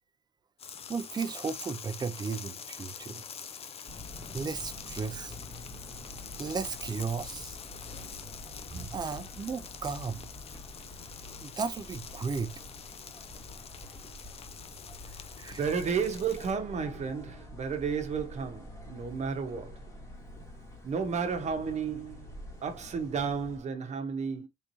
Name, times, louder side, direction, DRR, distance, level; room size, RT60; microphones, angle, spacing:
sound 1, 0.6-16.5, left 7 dB, 35° left, 0.5 m, -45 dB
voice 1, 0.9-3.2 4.3-5.4 6.4-7.6 8.7-10.3 11.4-12.5 15.1-15.6, right 5 dB, 25° right, 0.5 m, -35 dB
sound 2, 3.9-23.6, left 1 dB, 15° left, 1.3 m, -47 dB
voice 2, 15.5-19.9 20.8-22.2 22.6-24.5, right 6 dB, 40° right, 1.0 m, -32 dB
3.6 x 3.0 x 2.7 m
cardioid pair, 110°, 17 cm